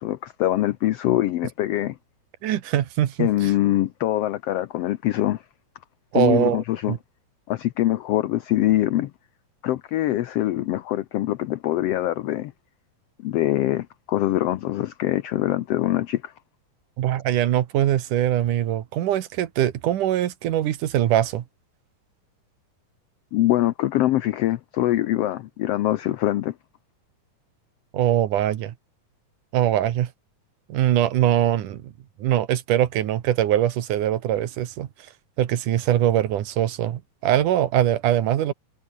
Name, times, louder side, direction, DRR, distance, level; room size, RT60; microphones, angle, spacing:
voice 1, 0.0-2.0 3.2-5.4 6.1-7.0 7.5-9.1 9.6-12.5 13.2-16.3 23.3-26.5, left 14 dB, 85° left, 1.4 m, -23 dB
voice 2, 2.4-3.5 6.1-7.0 17.0-21.4 27.9-28.7 29.5-30.1 30.7-31.9 32.2-34.9 35.4-38.5, right 12 dB, 75° right, 2.9 m, -22 dB
omnidirectional pair, 3.7 m